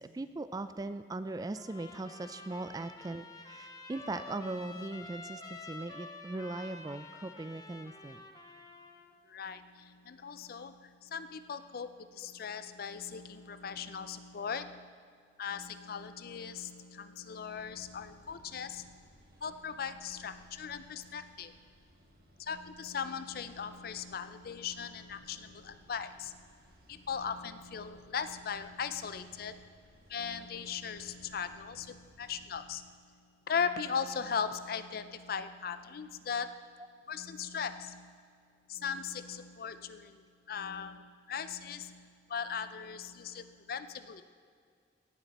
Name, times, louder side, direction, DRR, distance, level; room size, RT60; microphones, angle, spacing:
voice 1, 0.0-8.2 36.8-36.9, right 2 dB, 20° right, 12 dB, 0.3 m, -39 dB
Trumpet, 1.5-9.1, left 2 dB, 20° left, 0.7 m, -49 dB
voice 2, 9.3-14.9 15.4-19.1 19.4-21.6 22.4-26.5 26.9-29.8 30.1-33.2 33.5-36.7 37.1-38.2 38.7-44.2, left 6 dB, 55° left, 12 dB, 0.4 m, -39 dB
sound 1, 17.5-32.8, equal, 55° right, 1.5 m, -62 dB
17.0 x 7.3 x 4.2 m, 2.1 s
head